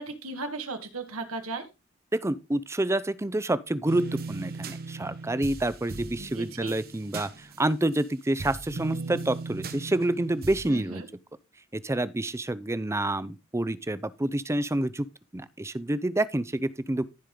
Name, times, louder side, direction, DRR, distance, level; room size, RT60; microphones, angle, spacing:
voice 1, 0.0-1.7 6.2-6.7 10.7-11.1, right 3 dB, 90° right, 2.0 m, -36 dB
voice 2, 2.1-11.0 11.7-15.1 15.3-17.0, right 1 dB, 15° right, 0.5 m, -28 dB
sound 1, 3.8-8.0 8.4-10.7, right 3 dB, 45° right, 1.0 m, -38 dB
15.0 x 5.0 x 3.8 m
head